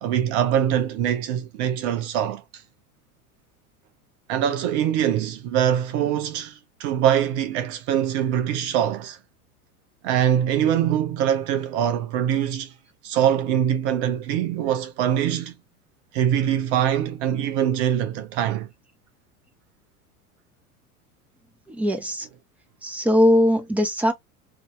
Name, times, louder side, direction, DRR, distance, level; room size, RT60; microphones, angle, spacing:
voice 1, 0.0-2.6 4.3-9.2 10.0-12.7 13.0-15.5 16.1-18.7, right 10 dB, 45° right, 0.8 m, -23 dB
voice 2, 21.7-22.3 22.8-24.1, left 1 dB, 5° right, 1.0 m, -20 dB
3.4 x 2.7 x 3.4 m
figure-of-eight pair, 85°, 45 cm